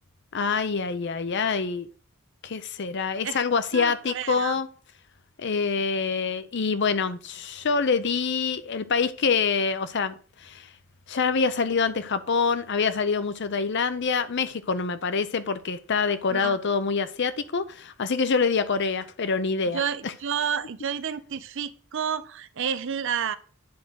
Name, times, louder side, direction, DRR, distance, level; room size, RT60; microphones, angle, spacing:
voice 1, 0.3-1.9 2.4-4.7 5.4-10.1 10.4-10.7 11.1-20.1, left 5 dB, 55° left, 0.6 m, -26 dB
voice 2, 3.7-4.6 16.3-16.6 19.7-23.4, right 7 dB, 60° right, 0.6 m, -30 dB
9.6 x 3.8 x 6.1 m
head